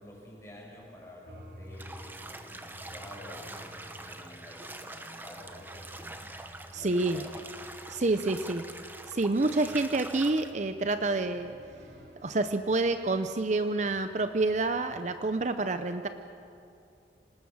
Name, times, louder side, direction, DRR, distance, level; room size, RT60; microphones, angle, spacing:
voice 1, 0.0-6.3 6.6-7.7 9.7-9.8, left 1 dB, 15° left, -3 dB, 6.4 m, -49 dB
sound 1, 1.2-15.5, equal, 80° right, 3.3 m, -53 dB
Bathtub (filling or washing), 1.7-10.5, right 2 dB, 10° right, 1.0 m, -45 dB
voice 2, 6.7-7.2 7.9-8.6 9.1-11.6 12.2-16.1, right 2 dB, 40° right, 9 dB, 0.6 m, -28 dB
25.5 x 18.5 x 7.2 m, 2.6 s
head